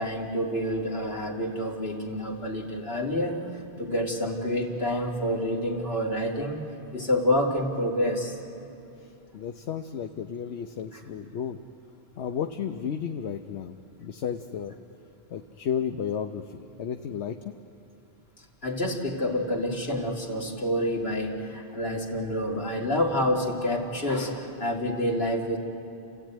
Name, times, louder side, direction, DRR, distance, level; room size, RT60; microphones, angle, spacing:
voice 1, 0.0-3.4 3.8-6.6 6.9-8.4 10.9-11.0 18.6-25.6, left 1 dB, 65° left, -1 dB, 2.9 m, -28 dB
voice 2, 9.3-11.6 12.2-13.7 14.0-14.7 15.3-17.5, left 8 dB, 80° left, 7 dB, 1.0 m, -33 dB
30.0 x 15.0 x 9.1 m, 2.7 s
omnidirectional pair, 1.1 m